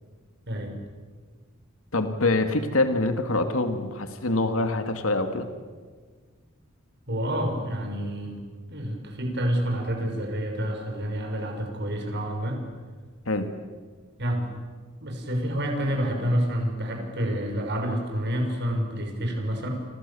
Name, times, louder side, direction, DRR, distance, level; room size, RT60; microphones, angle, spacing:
voice 1, 0.5-0.8 7.1-8.4 8.7-12.6 14.2-14.5 15.0-19.7, equal, 55° right, 3 dB, 5.9 m, -28 dB
voice 2, 1.9-5.5 13.3-13.5, left 2 dB, 70° left, 7 dB, 2.3 m, -25 dB
29.5 x 26.0 x 7.2 m, 1.5 s
head